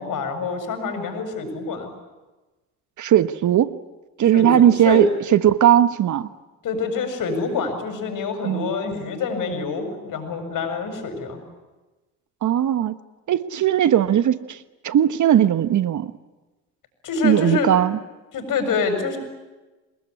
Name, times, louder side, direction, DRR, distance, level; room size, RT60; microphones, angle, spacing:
voice 1, 0.0-1.9 4.3-4.5 4.8-5.0 6.6-11.4 17.0-17.7 18.3-19.2, left 4 dB, 55° left, 7 dB, 7.3 m, -26 dB
voice 2, 3.0-3.8 4.2-5.1 5.3-6.3 8.4-8.7 12.4-13.0 13.3-14.6 14.8-16.1 17.2-18.0, right 11 dB, 50° right, 12 dB, 1.2 m, -18 dB
27.5 x 20.0 x 9.9 m, 1.2 s
hypercardioid pair, 70°, 38 cm